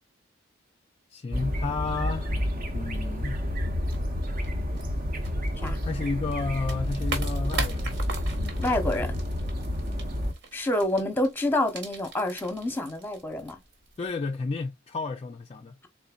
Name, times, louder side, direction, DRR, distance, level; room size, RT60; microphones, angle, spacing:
voice 1, 1.1-2.5 2.7-3.4 5.8-8.0 8.4-8.6 10.5-10.7 14.0-15.7, left 3 dB, 30° left, 0.3 m, -32 dB
sound 1, 1.3-10.3, equal, 45° right, 0.8 m, -29 dB
sound 2, 3.9-14.1, right 3 dB, 60° right, 1.3 m, -41 dB
voice 2, 8.6-9.1 10.5-13.6, left 1 dB, 10° left, 0.9 m, -27 dB
3.9 x 3.7 x 2.3 m
head